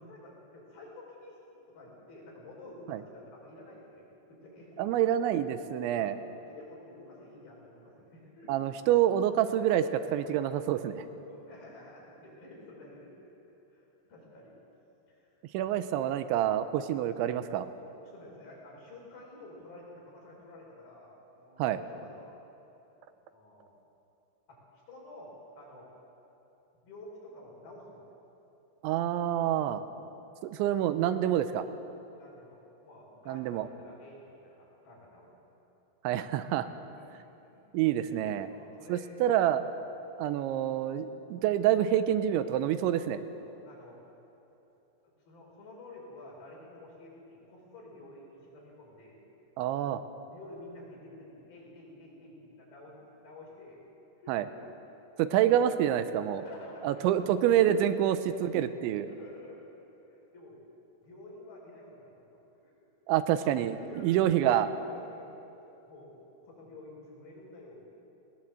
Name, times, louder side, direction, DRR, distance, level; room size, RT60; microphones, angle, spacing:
voice 1, 0.0-1.4 1.7-5.1 5.9-8.5 10.7-10.9 11.3-13.3 13.7-14.6 15.1-15.7 18.1-22.4 23.0-23.8 24.5-24.6 24.9-25.9 26.7-28.1 29.8-29.9 32.1-35.4 36.6-36.9 37.4-37.6 38.4-39.1 43.3-44.0 45.0-49.2 50.3-53.8 54.2-54.6 55.2-55.3 56.4-57.3 58.0-58.1 59.0-59.7 60.0-60.6 61.0-62.7 63.8-64.2 64.9-65.4 65.6-67.9, left 2 dB, 55° left, -3 dB, 6.6 m, -51 dB
voice 2, 4.8-6.2 8.5-10.9 15.5-17.7 21.6-21.8 28.8-29.8 30.4-31.7 33.3-33.7 36.0-36.7 37.7-38.5 38.9-39.6 40.2-43.2 49.6-50.0 54.3-54.5 55.2-56.4 56.8-59.1 63.1-64.7, right 11 dB, 85° right, 11 dB, 3.0 m, -27 dB
19.5 x 19.0 x 7.7 m, 3.0 s
omnidirectional pair, 5.3 m